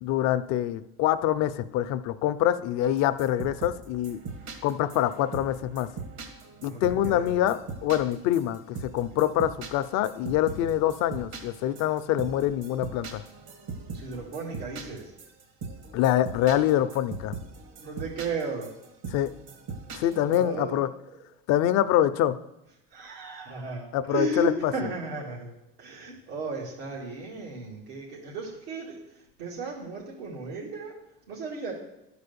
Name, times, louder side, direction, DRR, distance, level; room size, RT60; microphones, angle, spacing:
voice 1, 0.0-4.2 4.6-5.9 6.6-13.2 15.9-17.3 19.1-19.3 19.9-20.9 21.5-22.4 23.9-24.7, left 12 dB, 60° left, 12 dB, 0.7 m, -25 dB
sound 1, 2.8-20.4, right 4 dB, 70° right, 1.9 m, -41 dB
voice 2, 6.7-7.4 9.1-9.2 10.5-10.7 13.9-15.1 17.8-18.8 20.2-20.8 22.9-29.0 29.4-31.0 31.3-31.7, right 3 dB, 90° right, -6 dB, 2.4 m, -35 dB
11.0 x 4.8 x 6.9 m, 0.90 s
supercardioid pair, 105°, 30 cm